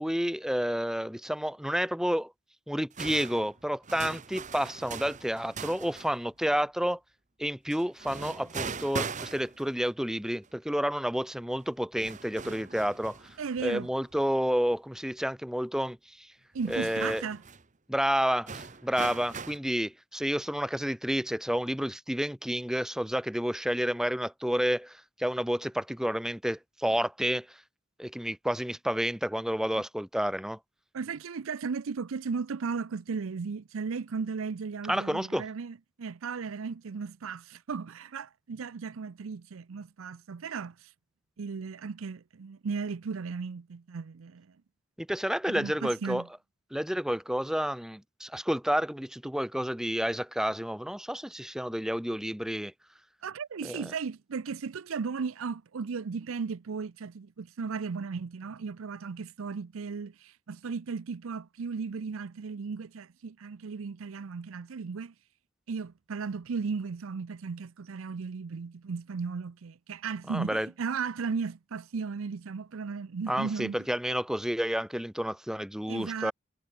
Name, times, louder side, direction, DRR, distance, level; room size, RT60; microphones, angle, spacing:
voice 1, 0.0-2.3 2.7-7.0 7.4-16.3 16.7-17.3 17.9-27.6 28.0-30.6 34.9-35.4 45.0-46.2 46.7-52.7 53.6-53.8 70.3-70.7 73.3-76.3, equal, 5° right, 0.9 m, -30 dB
sound 1, 2.9-6.2 7.7-9.9 10.4-10.5 11.6-11.7 11.9-14.2 14.6-14.7 16.5-17.6 18.5-19.6, right 5 dB, 35° right, 1.3 m, -40 dB
voice 2, 13.4-13.9 16.5-17.4 30.9-40.9 41.4-44.5 45.5-46.3 53.2-65.1 65.7-73.7 75.9-76.3, right 5 dB, 85° right, 0.5 m, -35 dB
head